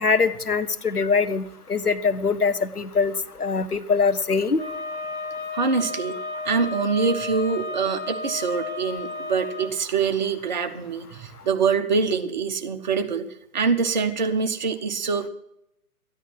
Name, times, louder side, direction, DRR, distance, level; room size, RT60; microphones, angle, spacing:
voice 1, 0.0-4.6, left 5 dB, 85° left, 11 dB, 1.0 m, -23 dB
Wind instrument woodwind instrument, 4.6-9.7, left 3 dB, 35° left, 4.1 m, -33 dB
voice 2, 5.5-6.2 6.4-13.3 13.5-15.3, right 5 dB, 30° right, 6 dB, 0.9 m, -24 dB
13.5 x 10.0 x 5.9 m, 0.79 s
figure-of-eight pair, 130°, 45 cm